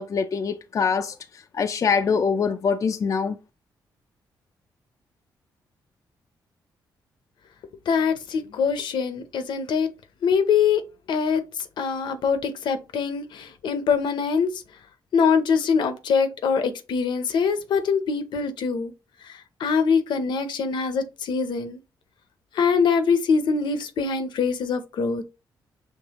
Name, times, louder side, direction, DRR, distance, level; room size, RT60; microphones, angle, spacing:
voice 1, 0.0-3.4, left 5 dB, 45° left, 0.4 m, -24 dB
voice 2, 7.9-9.9 10.2-10.8 11.1-11.4 11.8-14.5 15.1-18.9 19.6-21.8 22.5-25.2, left 6 dB, 75° left, 0.7 m, -23 dB
5.3 x 3.1 x 2.9 m
cardioid pair, 90°, 8 cm